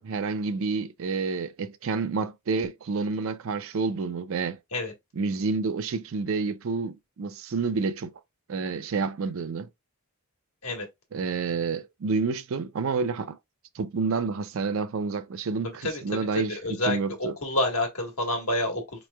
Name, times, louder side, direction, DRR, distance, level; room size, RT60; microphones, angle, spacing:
voice 1, 0.0-4.6 5.1-8.1 8.5-9.7 11.1-13.4 13.7-17.3, right 4 dB, 65° right, 0.4 m, -29 dB
voice 2, 15.6-16.0 16.5-18.8, left 1 dB, 80° left, 1.3 m, -28 dB
4.2 x 3.1 x 2.2 m
head